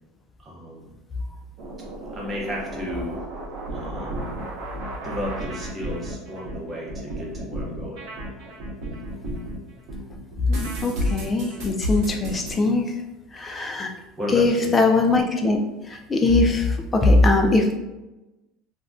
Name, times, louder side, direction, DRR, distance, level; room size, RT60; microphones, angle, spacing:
voice 1, 0.4-0.9 2.1-3.2 3.7-4.3 5.0-8.0 14.2-14.7, equal, 15° right, -4 dB, 0.7 m, -33 dB
sound 1, 1.6-9.6 9.9-12.5, equal, 60° right, 0.8 m, -32 dB
voice 2, 10.5-12.8 13.3-13.9 14.3-15.6 15.9-17.8, left 2 dB, 15° left, 3 dB, 0.3 m, -20 dB
2.4 x 2.1 x 3.5 m, 1.0 s
cardioid pair, 160°, 0 cm